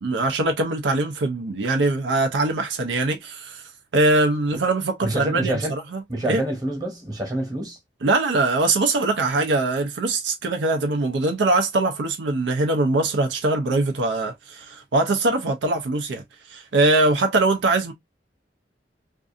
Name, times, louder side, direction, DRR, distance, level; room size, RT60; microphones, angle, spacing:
voice 1, 0.0-3.6 3.9-6.0 6.3-6.4 8.0-17.9, right 2 dB, 80° right, 0.5 m, -22 dB
voice 2, 5.0-5.7 6.1-7.8, right 1 dB, 20° right, 1.1 m, -27 dB
2.5 x 2.5 x 2.4 m
head